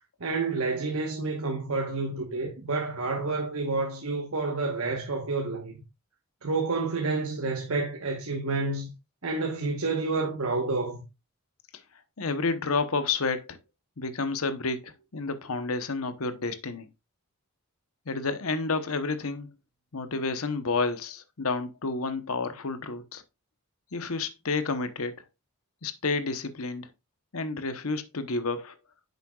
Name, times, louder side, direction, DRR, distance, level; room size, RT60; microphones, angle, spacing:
voice 1, 0.2-5.7 6.4-8.9 9.2-11.0, right 3 dB, 70° right, 1.2 m, -29 dB
voice 2, 12.2-13.6 14.0-16.9 18.1-19.5 19.9-23.2 23.9-25.1 25.8-26.9 27.3-28.7, left 3 dB, 75° left, 0.9 m, -30 dB
9.4 x 6.7 x 2.4 m
head